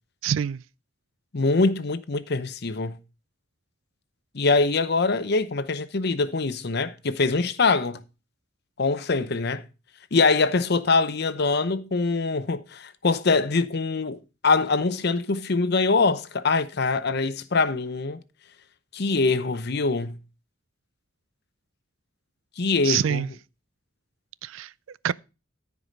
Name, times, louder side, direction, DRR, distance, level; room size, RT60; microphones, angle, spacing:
voice 1, 0.2-0.6 22.8-23.3 24.4-25.1, right 9 dB, 75° right, 0.4 m, -26 dB
voice 2, 1.3-3.0 4.3-8.0 8.8-9.6 10.1-18.2 18.9-20.2 22.6-23.2, left 3 dB, 55° left, 0.8 m, -23 dB
14.0 x 4.9 x 5.2 m
head